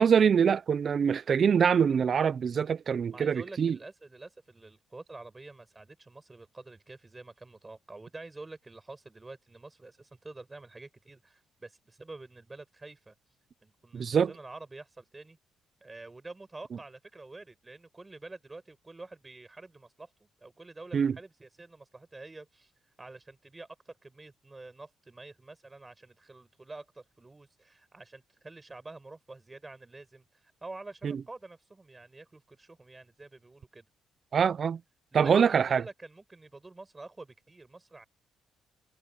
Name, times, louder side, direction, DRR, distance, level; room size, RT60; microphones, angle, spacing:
voice 1, 0.0-3.8 13.9-14.3 20.9-21.1 34.3-34.8 35.1-35.8, right 7 dB, 50° right, 0.5 m, -24 dB
voice 2, 3.1-13.2 13.6-15.4 15.8-22.7 23.0-33.9 35.1-38.1, right 2 dB, 20° right, 5.7 m, -48 dB
cardioid pair, 90°, 0 cm